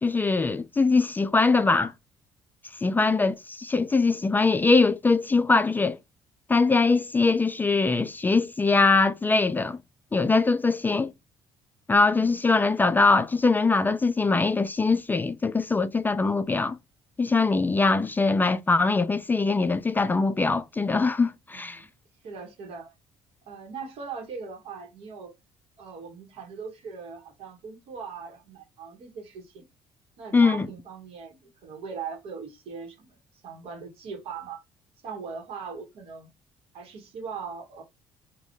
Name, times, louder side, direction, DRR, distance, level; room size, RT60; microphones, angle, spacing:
voice 1, 0.0-1.9 2.8-6.0 6.5-9.8 10.1-11.1 11.9-16.8 17.2-21.8 30.3-30.7, left 3 dB, 20° left, 0.3 m, -22 dB
voice 2, 2.9-3.2 12.1-12.4 21.5-21.9 22.2-22.9 23.5-25.3 25.8-29.7 30.2-33.2 33.4-34.6 35.0-36.3 36.7-37.8, right 5 dB, 70° right, 1.2 m, -40 dB
3.5 x 2.3 x 2.5 m
supercardioid pair, 80°, 10 cm